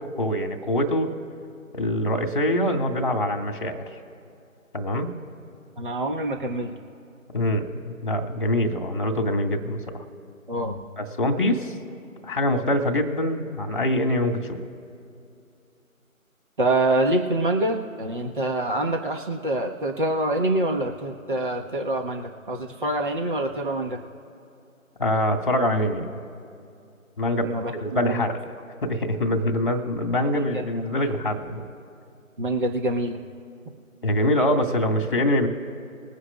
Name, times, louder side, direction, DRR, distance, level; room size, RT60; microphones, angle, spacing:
voice 1, 0.2-1.1 1.7-3.8 4.7-5.1 7.3-10.0 11.0-11.7 12.2-14.6 25.0-26.2 27.2-27.5 27.8-28.4 28.8-31.6 34.0-35.5, left 1 dB, 20° left, 4 dB, 1.7 m, -24 dB
voice 2, 5.8-6.7 10.5-10.9 16.6-24.0 27.4-28.2 30.3-30.5 30.7-30.8 32.4-33.2, right 1 dB, 35° right, 2 dB, 1.3 m, -26 dB
22.0 x 9.7 x 2.4 m, 2.5 s
figure-of-eight pair, 160°, 41 cm